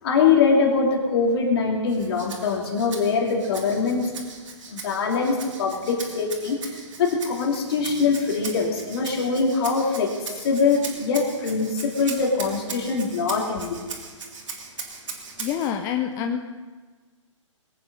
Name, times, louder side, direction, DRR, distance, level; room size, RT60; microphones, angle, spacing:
voice 1, 0.0-4.0 4.7-13.8, left 5 dB, 50° left, 1 dB, 3.0 m, -23 dB
Rattle (instrument), 1.9-15.7, right 4 dB, 70° right, 3.0 m, -39 dB
voice 2, 15.4-16.4, left 9 dB, 20° left, 5 dB, 0.6 m, -26 dB
21.5 x 8.9 x 5.5 m, 1.4 s
hypercardioid pair, 135°, 17 cm